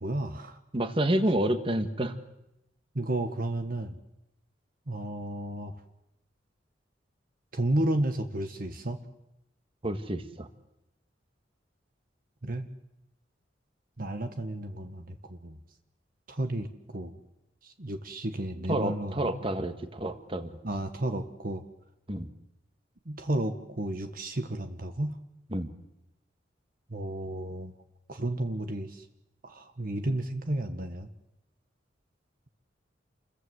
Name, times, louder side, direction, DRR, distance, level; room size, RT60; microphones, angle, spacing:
voice 1, 0.0-0.6 2.9-4.0 4.9-5.8 7.5-9.0 12.4-12.7 14.0-15.6 16.3-17.1 17.6-19.3 20.6-21.6 23.0-25.2 26.9-27.7 28.1-29.0 29.4-31.1, right 1 dB, 50° right, 7 dB, 1.5 m, -32 dB
voice 2, 0.7-2.1 9.8-10.5 18.7-20.5 22.1-22.3 25.5-25.7, right 1 dB, 30° right, 9 dB, 1.8 m, -29 dB
28.5 x 22.0 x 8.1 m, 0.85 s
head